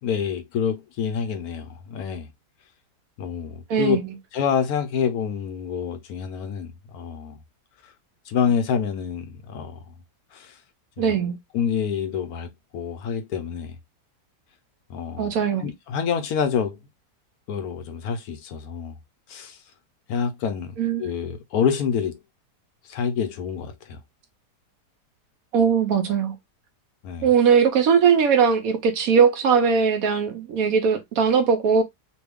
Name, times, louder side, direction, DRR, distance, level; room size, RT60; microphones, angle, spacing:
voice 1, 0.0-2.3 3.2-4.0 4.3-7.4 7.8-7.9 8.3-9.8 10.3-10.6 11.0-11.1 11.5-13.8 14.9-15.3 15.6-16.8 17.5-19.0 19.3-19.6 20.1-22.2 22.8-24.0 27.0-27.3, left 7 dB, 70° left, 1.0 m, -27 dB
voice 2, 3.7-4.0 11.0-11.3 15.2-15.7 20.8-21.1 25.5-26.3 27.2-31.8, right 6 dB, 70° right, 0.9 m, -20 dB
3.0 x 2.2 x 3.3 m
omnidirectional pair, 1.8 m